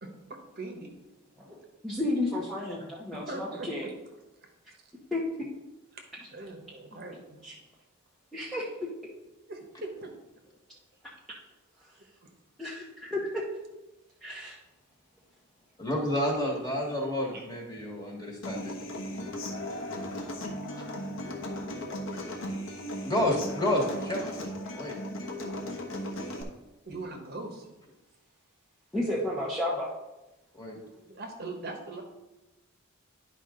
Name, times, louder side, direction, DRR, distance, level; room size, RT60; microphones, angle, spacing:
voice 1, 0.0-0.9 3.1-3.9 5.9-6.1 6.3-7.4 9.5-10.1 12.2-12.3 17.0-17.5 26.9-27.7 31.1-32.0, right 2 dB, 45° right, 3 dB, 1.1 m, -41 dB
voice 2, 1.8-3.9 5.1-5.5 7.4-7.5 8.3-8.7 12.6-13.5 14.2-14.6 28.9-29.9, left 1 dB, ahead, -6 dB, 0.9 m, -32 dB
voice 3, 15.8-18.7 23.0-24.3 24.7-24.9 30.5-30.8, left 1 dB, 20° left, -1 dB, 1.6 m, -29 dB
Human voice / Acoustic guitar, 18.4-26.4, left 1 dB, 65° left, 1.2 m, -36 dB
10.5 x 5.0 x 3.8 m, 1.0 s
head